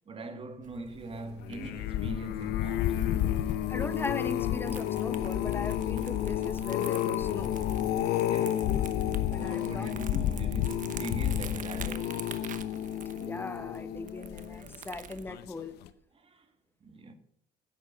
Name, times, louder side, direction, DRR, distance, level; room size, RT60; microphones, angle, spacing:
voice 1, 0.1-2.9 8.3-8.7 9.4-12.2 16.2-16.4 16.8-17.1, right 3 dB, 35° right, 1.6 m, -41 dB
Crumpling crinkling, 0.6-15.2, right 8 dB, 50° right, 0.9 m, -48 dB
sound 1, 1.4-14.7 15.3-15.6 15.9-16.0, left 11 dB, 85° left, 0.7 m, -31 dB
voice 2, 3.7-7.6 9.3-9.9 13.2-15.8, left 3 dB, 15° left, 0.8 m, -39 dB
10.5 x 8.3 x 5.1 m
cardioid pair, 105°, 17 cm